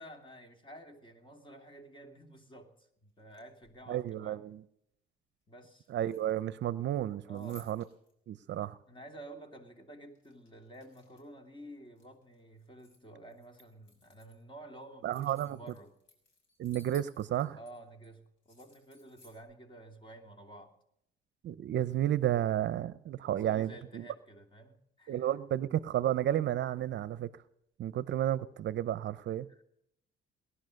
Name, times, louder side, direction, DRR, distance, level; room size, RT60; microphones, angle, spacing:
voice 1, 0.0-4.5 5.5-5.9 7.2-7.7 8.9-16.0 17.5-20.7 23.3-25.4 29.5-29.6, right 1 dB, 25° left, 2.9 m, -51 dB
sound 1, 3.2-3.9 5.8-6.6 6.9-8.1 8.6-8.7 10.1-11.4 11.7-13.0 13.3-14.4 14.8-17.7 18.0-18.1 18.4-19.4, left 2 dB, 60° left, 6.3 m, -61 dB
voice 2, 3.9-4.6 5.9-7.8 8.3-8.8 15.0-15.6 16.6-17.6 21.4-24.1 25.1-27.3 27.8-29.5, right 12 dB, 60° right, 0.7 m, -32 dB
19.5 x 11.5 x 6.5 m
cardioid pair, 100°, 21 cm